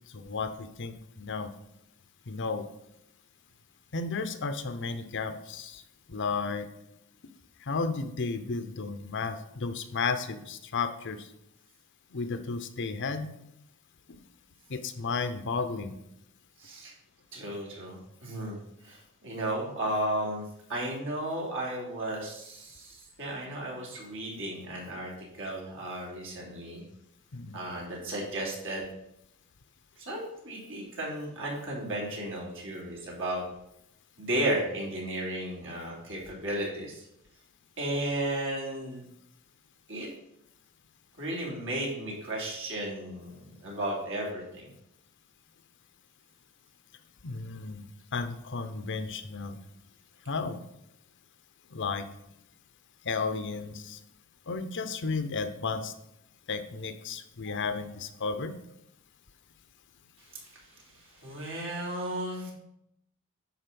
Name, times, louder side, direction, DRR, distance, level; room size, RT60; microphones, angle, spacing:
voice 1, 0.1-1.5 2.3-2.7 3.9-5.8 6.1-6.7 7.6-11.3 12.1-13.3 14.7-15.9 27.3-27.6 47.2-47.8 48.1-49.6 50.3-50.6 51.7-52.0 53.0-54.0 54.5-55.9 56.5-58.5, left 4 dB, 55° left, 10 dB, 0.8 m, -33 dB
voice 2, 16.6-16.9 17.3-26.8 27.5-28.9 30.0-33.4 34.2-37.0 37.8-39.0 39.9-40.1 41.2-44.7 60.3-60.6 61.1-62.5, right 1 dB, 60° right, -3 dB, 3.4 m, -34 dB
10.0 x 4.3 x 6.9 m, 0.80 s
head